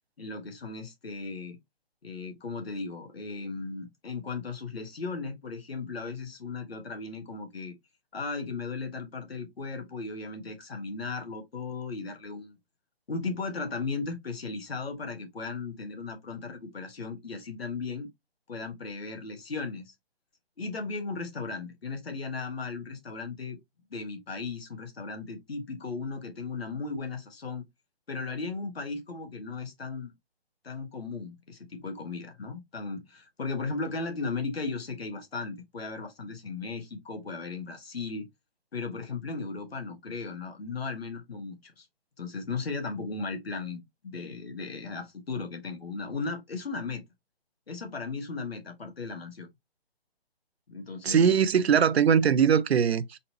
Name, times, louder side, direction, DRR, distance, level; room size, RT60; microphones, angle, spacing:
voice 1, 0.2-1.6 2.0-7.7 8.1-12.5 13.1-18.1 18.5-19.9 20.6-23.6 23.9-27.6 28.1-30.1 30.6-38.3 38.7-41.9 42.2-47.0 47.7-49.5 50.7-51.3, left 4 dB, 75° left, 1.4 m, -36 dB
voice 2, 51.0-53.2, right 7 dB, 85° right, 0.5 m, -21 dB
4.0 x 2.8 x 2.8 m
hypercardioid pair, 155°, 31 cm